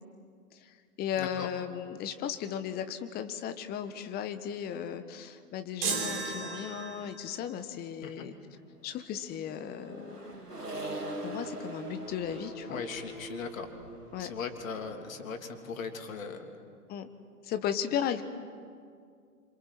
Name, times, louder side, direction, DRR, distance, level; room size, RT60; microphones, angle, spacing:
voice 1, 0.5-8.3 8.8-10.2 11.2-12.8 14.1-14.3 16.9-17.1 17.4-18.2, left 9 dB, 20° left, 9 dB, 1.3 m, -36 dB
voice 2, 1.1-1.5 8.0-8.3 12.7-13.7 14.2-16.4, left 5 dB, 60° left, 5 dB, 3.2 m, -38 dB
sound 1, 5.8-7.3, right 5 dB, 30° right, 4.3 m, -34 dB
Accelerating revving vroom, 9.1-15.8, right 1 dB, 90° right, 3.6 m, -42 dB
27.0 x 25.5 x 7.8 m, 2.2 s
figure-of-eight pair, 115°, 46 cm